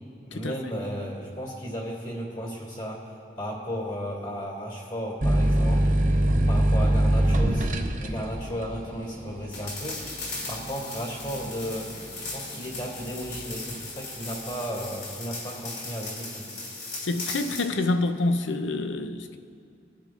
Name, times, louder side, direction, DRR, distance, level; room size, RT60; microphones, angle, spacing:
voice 1, 0.3-6.0 6.3-12.0 12.3-16.5, equal, 40° left, 2.5 m, -35 dB
sound 1, 5.2-12.5 12.9-13.6, right 1 dB, 40° right, 0.6 m, -24 dB
sound 2, 9.5-17.7, left 3 dB, 60° left, 2.9 m, -37 dB
voice 2, 17.0-19.4, left 2 dB, 90° left, 0.7 m, -27 dB
20.5 x 10.5 x 2.5 m
head